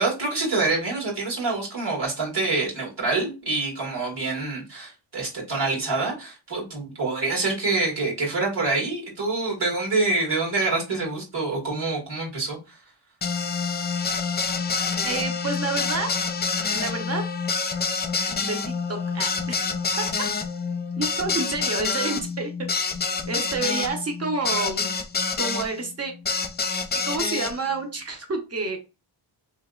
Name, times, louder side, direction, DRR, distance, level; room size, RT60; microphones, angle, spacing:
voice 1, 0.0-12.8, right 3 dB, 55° right, -2 dB, 1.9 m, -26 dB
sound 1, 13.2-25.7 26.3-27.5, left 5 dB, 25° left, 0.4 m, -27 dB
voice 2, 15.1-16.1 16.7-17.2 18.4-18.6 18.9-19.6 21.0-22.7 23.3-24.9 25.4-26.1 27.0-28.8, right 3 dB, 30° right, 4 dB, 1.0 m, -29 dB
3.3 x 2.9 x 2.4 m, 0.29 s
cardioid pair, 90°, 48 cm